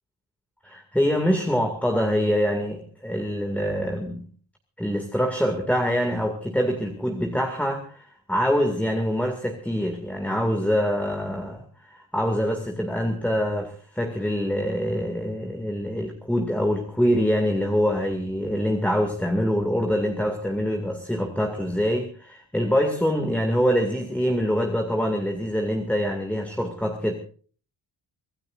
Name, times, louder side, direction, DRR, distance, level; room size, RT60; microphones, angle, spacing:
voice 1, 0.6-4.2 4.8-27.1, equal, 5° left, 3 dB, 2.3 m, -25 dB
25.5 x 18.5 x 2.6 m, 0.43 s
wide cardioid pair, 175°, 45 cm